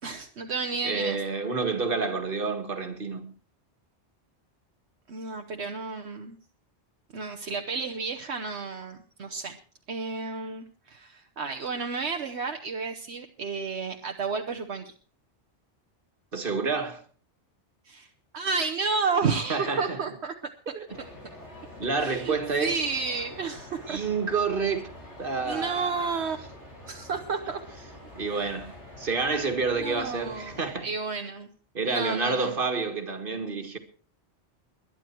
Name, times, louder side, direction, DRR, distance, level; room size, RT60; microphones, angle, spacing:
voice 1, 0.0-1.2 5.1-6.4 7.1-9.6 9.9-14.9 17.9-20.3 22.0-24.0 25.4-26.4 26.9-27.6 28.3-28.4 29.7-31.5 31.9-32.6, right 4 dB, 75° right, 1.3 m, -31 dB
voice 2, 0.8-3.3 16.3-17.0 19.5-20.0 20.7-21.0 21.8-22.8 23.9-24.9 25.2-26.1 28.2-30.9 31.7-33.8, right 4 dB, 50° right, 2.1 m, -29 dB
sound 1, 20.9-30.7, left 1 dB, 90° left, 6.0 m, -46 dB
21.5 x 10.0 x 4.5 m
omnidirectional pair, 1.2 m